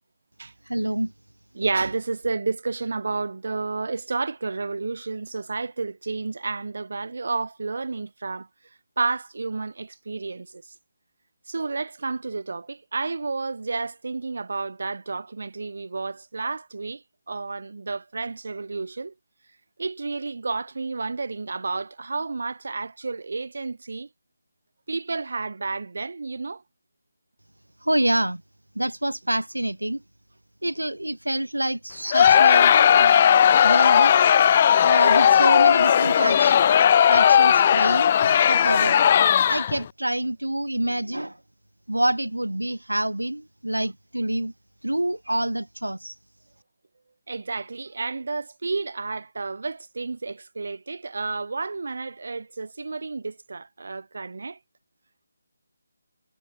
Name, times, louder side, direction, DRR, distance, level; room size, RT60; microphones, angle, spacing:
voice 1, 0.6-1.1 27.8-28.4 28.7-30.0 30.6-33.1 33.6-34.2 34.6-36.6 37.1-39.0 39.4-41.4 41.9-44.5 44.8-46.2, right 1 dB, 80° right, 1.4 m, -27 dB
voice 2, 1.5-8.5 9.0-10.6 11.5-19.1 19.8-24.1 24.9-26.6 47.3-54.6, right 3 dB, 55° right, 3.5 m, -31 dB
Crowd, 32.1-39.8, left 9 dB, 30° left, 0.4 m, -17 dB
figure-of-eight pair, 155°, 0 cm